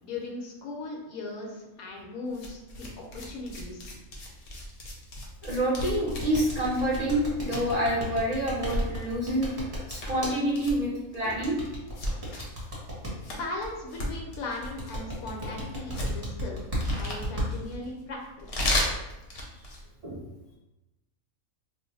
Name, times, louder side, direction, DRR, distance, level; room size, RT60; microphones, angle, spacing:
voice 1, 0.0-3.9 13.3-16.6 17.0-18.7, left 2 dB, 90° left, 0 dB, 1.1 m, -38 dB
sound 1, 2.3-19.9, left 1 dB, 55° left, 0.7 m, -36 dB
voice 2, 5.4-9.5 9.9-11.6 20.0-20.2, right 1 dB, 55° right, -6 dB, 0.4 m, -27 dB
sound 2, 5.8-10.3 11.4-13.1 14.6-17.5, equal, 20° right, 0.7 m, -33 dB
2.6 x 2.1 x 3.9 m, 0.99 s
omnidirectional pair, 1.4 m